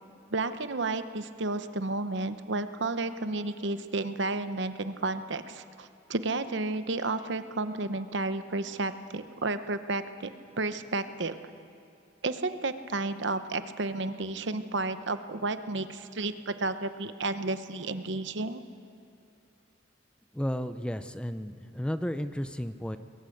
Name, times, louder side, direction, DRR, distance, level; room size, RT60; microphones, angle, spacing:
voice 1, 0.3-10.3 10.6-11.4 12.2-18.6, right 2 dB, 65° right, 10 dB, 1.0 m, -32 dB
voice 2, 20.3-23.0, equal, 5° left, 10 dB, 0.5 m, -33 dB
21.5 x 18.5 x 7.9 m, 2.7 s
head